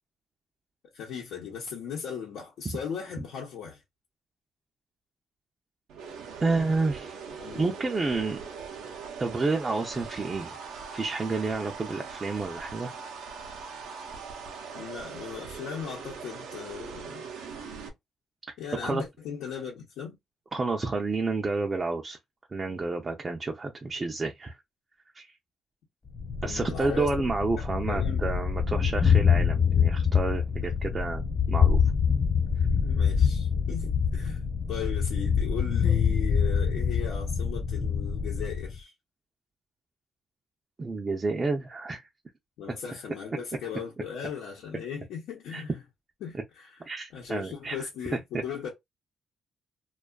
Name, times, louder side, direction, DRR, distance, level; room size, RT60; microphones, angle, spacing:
voice 1, 0.9-3.8 7.4-7.7 14.7-17.3 18.6-20.1 26.4-27.3 27.6-28.3 30.6-31.0 32.8-34.4 34.7-38.9 42.6-45.8 46.2-46.8 47.1-48.7, left 7 dB, 85° left, 0.8 m, -38 dB
sound 1, 5.9-17.9, right 5 dB, 85° right, 0.6 m, -41 dB
voice 2, 6.4-7.2 7.5-8.4 9.2-10.6 10.9-12.9 18.8-19.0 20.5-22.2 22.5-24.5 25.1-25.3 26.4-31.8 40.8-42.0 45.5-45.6 46.3-46.4 46.9-47.8 48.3-48.4, right 3 dB, 30° right, 0.5 m, -30 dB
Thunder, 26.1-38.8, left 6 dB, 40° left, 1.1 m, -25 dB
2.5 x 2.3 x 2.2 m
cardioid pair, 90°, 0 cm